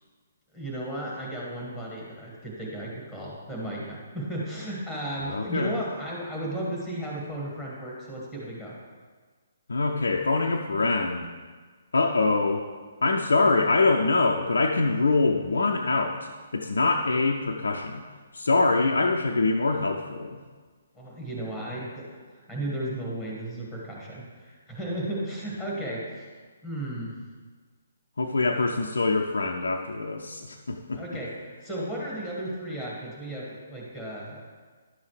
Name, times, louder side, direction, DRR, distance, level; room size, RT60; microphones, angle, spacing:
voice 1, 0.5-8.8 20.9-26.3 26.6-27.2 30.9-34.4, right 1 dB, 5° right, -4 dB, 1.8 m, -34 dB
voice 2, 5.2-5.7 9.7-11.3 11.9-12.7 13.0-18.0 18.3-20.4 28.2-31.0, left 3 dB, 65° left, 1 dB, 0.5 m, -24 dB
11.0 x 7.2 x 3.2 m, 1.5 s
figure-of-eight pair, 130°, 0 cm